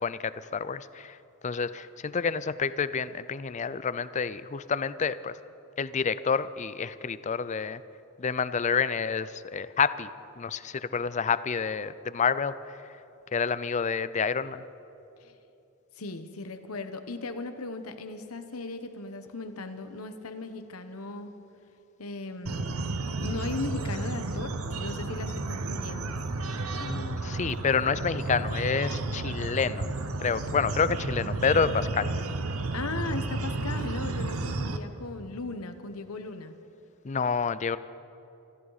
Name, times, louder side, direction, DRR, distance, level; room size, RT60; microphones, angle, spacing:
voice 1, 0.0-1.2 1.4-5.3 5.8-7.8 8.2-10.1 10.4-12.8 13.3-14.6 26.8-29.9 30.2-32.1 37.0-37.8, left 5 dB, 35° left, 15 dB, 0.4 m, -28 dB
voice 2, 16.0-21.3 22.0-26.2 32.7-36.5, left 3 dB, 85° left, 8 dB, 1.1 m, -37 dB
sound 1, 22.5-34.8, right 2 dB, 80° right, 0.9 m, -32 dB
25.0 x 14.0 x 4.1 m, 2.9 s
head